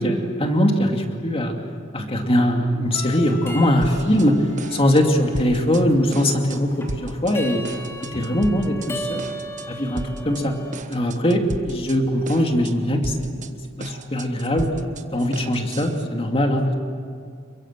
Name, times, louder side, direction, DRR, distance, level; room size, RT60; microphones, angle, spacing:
voice 1, 0.0-1.5 1.9-4.4 4.7-7.6 8.1-9.3 9.7-10.5 10.9-13.4 13.8-14.7 15.1-16.7, equal, 30° left, 3 dB, 2.6 m, -21 dB
sound 1, 2.9-10.8, equal, 15° left, 3.2 m, -36 dB
sound 2, 3.8-4.3 4.6-5.8 6.1-6.6 6.9-7.3 7.6-8.9 9.2-9.7 10.0-10.4 10.7-12.0 12.3-12.7 13.0-16.1, right 2 dB, 35° right, 1.2 m, -34 dB
28.5 x 23.0 x 7.6 m, 2.3 s
head